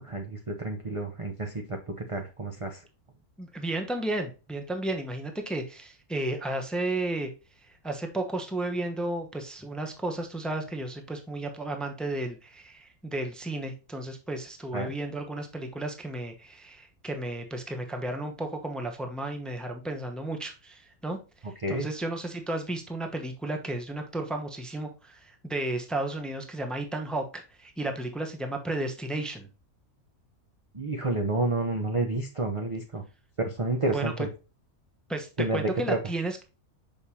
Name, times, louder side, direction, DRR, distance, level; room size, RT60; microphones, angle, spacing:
voice 1, 0.0-1.8 2.1-2.8 14.7-14.9 21.6-21.9 30.7-33.0 33.4-34.3 35.4-36.0, right 2 dB, 30° right, 2 dB, 0.7 m, -29 dB
voice 2, 3.4-7.3 7.7-21.2 21.7-29.5 33.9-34.3 35.1-36.4, right 2 dB, ahead, 4 dB, 0.8 m, -33 dB
6.6 x 5.4 x 2.8 m, 0.31 s
omnidirectional pair, 1.5 m